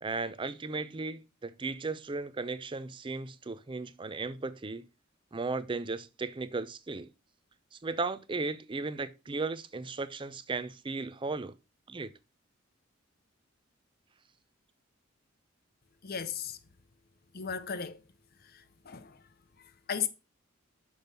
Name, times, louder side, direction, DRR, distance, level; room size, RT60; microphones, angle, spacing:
voice 1, 0.0-4.8 5.3-7.1 7.7-11.5 11.9-12.1, right 3 dB, 25° right, 0.5 m, -36 dB
voice 2, 16.0-16.6 17.3-17.9 18.9-19.1 19.9-20.1, left 7 dB, 50° left, 0.7 m, -34 dB
6.3 x 5.2 x 5.3 m
head